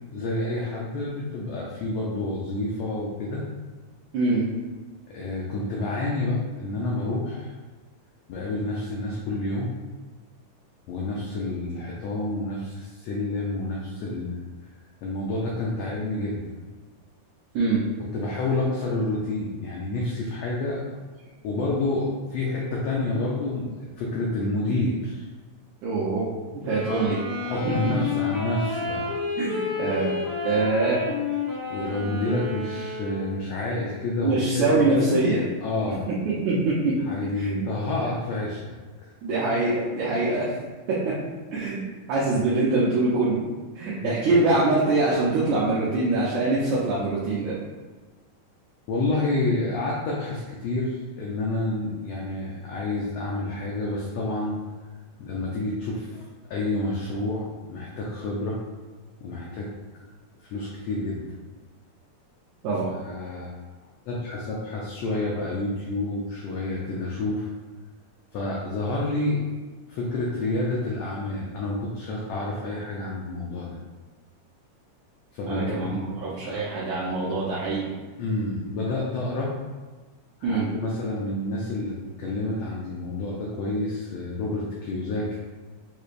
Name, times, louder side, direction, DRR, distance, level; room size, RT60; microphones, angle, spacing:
voice 1, 0.1-3.4 5.1-7.5 8.3-9.7 10.9-14.4 15.0-16.5 18.1-20.8 21.4-25.3 26.9-27.1 27.4-29.1 30.5-30.6 31.7-35.3 35.6-36.1 37.1-38.8 39.0-39.1 44.0-44.4 48.9-54.6 55.2-56.2 56.5-58.6 59.2-59.7 60.5-61.2 63.0-63.5 64.1-67.5 68.3-69.4 69.9-73.8 75.3-76.2 76.4-76.7 78.2-79.5 80.4-85.4, left 2 dB, 90° left, -3 dB, 1.4 m, -29 dB
voice 2, 4.1-4.4 17.6-17.8 25.8-26.2 26.6-27.2 27.6-27.8 29.4-30.2 30.4-31.0 34.2-35.5 36.3-36.9 37.4-37.7 39.2-40.5 40.9-41.1 41.5-41.8 42.1-43.5 43.8-47.6 62.6-62.9 75.5-77.9 80.4-80.7, right 3 dB, 75° right, -8 dB, 2.0 m, -24 dB
Wind instrument woodwind instrument, 26.6-33.5, left 3 dB, 45° right, 1.0 m, -30 dB
6.7 x 3.2 x 2.5 m, 1.3 s
omnidirectional pair, 3.7 m